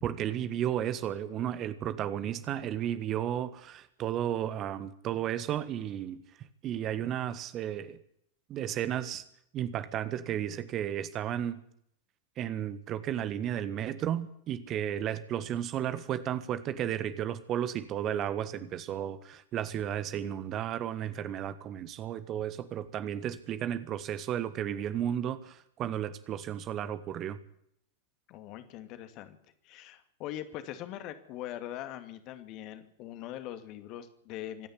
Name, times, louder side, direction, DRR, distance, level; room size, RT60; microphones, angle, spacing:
voice 1, 0.0-8.0 8.5-9.2 9.5-11.6 12.4-27.4, right 10 dB, 35° right, 13 dB, 1.4 m, -33 dB
voice 2, 28.3-29.4 29.6-34.7, left 12 dB, 40° left, 9 dB, 2.4 m, -42 dB
25.5 x 10.0 x 9.9 m, 0.70 s
figure-of-eight pair, 90°, 0 cm